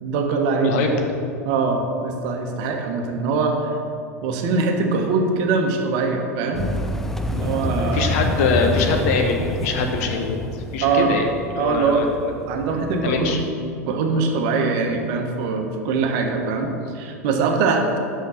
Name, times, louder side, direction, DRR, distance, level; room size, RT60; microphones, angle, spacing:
voice 1, 0.0-0.8 1.4-3.7 4.2-6.7 7.3-8.2 10.8-11.1 11.6-12.0 12.5-13.4 13.9-18.0, right 4 dB, 55° right, 3 dB, 1.1 m, -22 dB
sound 1, 6.5-13.5, left 1 dB, 5° left, 0.4 m, -28 dB
voice 2, 7.8-10.4 10.7-11.3 11.5-12.3 13.0-13.4, left 4 dB, 60° left, 3 dB, 1.1 m, -23 dB
6.1 x 5.6 x 6.3 m, 2.5 s
hypercardioid pair, 95°, 9 cm